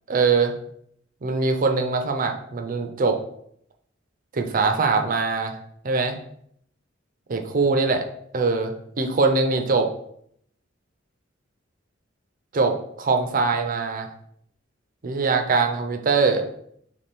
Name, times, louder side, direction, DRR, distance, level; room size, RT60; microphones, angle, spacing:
voice 1, 0.1-0.5 1.2-3.2 4.3-5.5 5.8-6.2 7.3-8.1 8.3-9.9 12.5-14.1 15.0-16.4, right 4 dB, 45° right, 5 dB, 0.5 m, -22 dB
3.4 x 3.2 x 4.3 m, 0.69 s
head